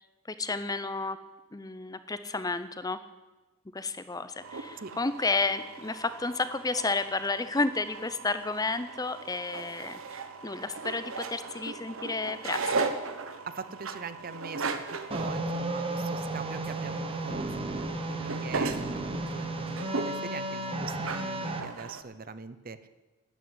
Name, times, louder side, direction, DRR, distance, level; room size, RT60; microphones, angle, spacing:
voice 1, 0.3-1.2 1.5-3.0 3.7-10.0 10.4-12.9, left 3 dB, 20° left, 12 dB, 0.6 m, -31 dB
sound 1, 4.4-22.0, right 4 dB, 80° right, 1.1 m, -38 dB
voice 2, 13.5-14.7 15.1-18.8 19.1-22.9, right 4 dB, 45° right, 13 dB, 0.7 m, -42 dB
sound 2, 15.1-21.6, right 2 dB, 25° right, 1.1 m, -33 dB
12.0 x 9.0 x 9.4 m, 1.1 s
head